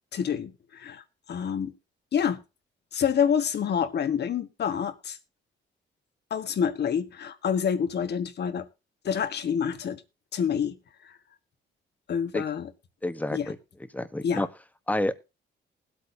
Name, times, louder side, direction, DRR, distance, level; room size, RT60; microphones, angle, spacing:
voice 1, 0.1-1.0 1.3-1.7 2.1-2.4 2.9-5.2 6.3-8.7 9.0-10.0 10.3-10.8 11.0-11.2 12.1-12.7 13.3-13.5 14.2-14.4, left 7 dB, 55° left, 1.4 m, -27 dB
voice 2, 13.0-13.6 13.9-14.5 14.9-15.1, left 1 dB, 10° left, 1.1 m, -28 dB
20.0 x 8.4 x 2.7 m
cardioid pair, 90°, 20 cm